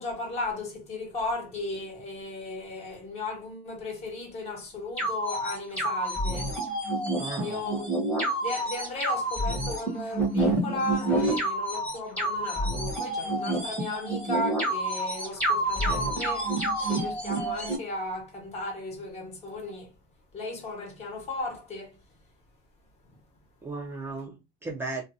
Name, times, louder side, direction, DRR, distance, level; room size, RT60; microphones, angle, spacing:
voice 1, 0.0-6.5 7.4-7.9 8.4-16.5 16.8-19.9 20.3-22.0, left 2 dB, 30° left, 1.0 m, -35 dB
sound 1, 5.0-17.8, right 1 dB, 5° left, 1.0 m, -28 dB
voice 2, 7.2-7.6 23.6-25.0, right 3 dB, 10° right, 0.4 m, -36 dB
2.4 x 2.2 x 2.6 m
cardioid pair, 145°, 21 cm